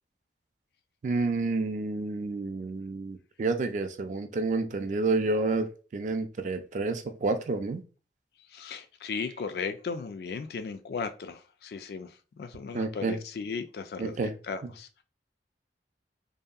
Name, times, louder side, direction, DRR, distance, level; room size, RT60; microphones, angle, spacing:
voice 1, 1.0-7.8 12.7-13.2 14.0-14.3 14.6-14.7, right 3 dB, 45° right, 0.3 m, -29 dB
voice 2, 8.5-12.1 12.4-14.2 14.5-14.9, left 5 dB, 60° left, 0.3 m, -36 dB
2.7 x 2.5 x 2.3 m
head